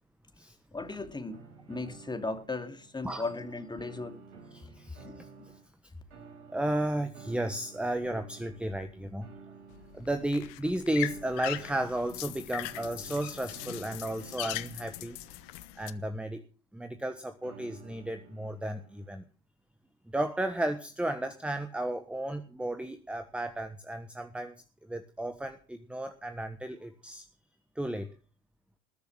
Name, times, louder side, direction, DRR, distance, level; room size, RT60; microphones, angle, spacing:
voice 1, 0.7-1.4 1.7-4.2 5.0-5.2, left 3 dB, 15° left, 2.5 m, -36 dB
sound 1, 1.3-2.9 3.3-5.7 6.1-16.1 17.4-19.2, right 5 dB, 75° right, 5.4 m, -53 dB
voice 2, 4.5-5.3 6.5-9.3 9.9-15.2 15.8-16.4 16.7-19.2 20.1-24.5 24.9-27.2 27.7-28.1, right 1 dB, 5° right, 1.3 m, -33 dB
sound 2, 9.7-15.9, left 18 dB, 60° left, 1.1 m, -40 dB
20.5 x 6.9 x 7.3 m
hypercardioid pair, 75°, 34 cm